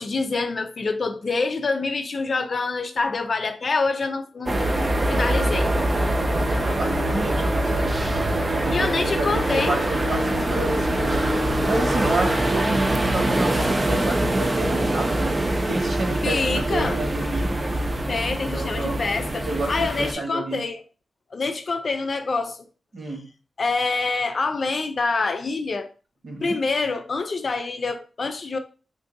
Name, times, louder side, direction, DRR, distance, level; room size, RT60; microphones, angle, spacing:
voice 1, 0.0-5.7 8.7-9.8 16.2-17.0 18.1-20.8 21.3-22.6 23.6-25.9 26.4-28.6, left 3 dB, 50° left, 0.4 m, -26 dB
sound 1, 4.5-20.1, right 1 dB, 25° right, 0.4 m, -23 dB
voice 2, 6.3-7.9 8.6-11.3 11.7-15.4 15.7-17.5 18.5-19.0 19.4-20.6 22.9-23.3 26.2-26.6, right 2 dB, 65° right, 1.3 m, -30 dB
2.6 x 2.6 x 3.8 m
wide cardioid pair, 95°, 0 cm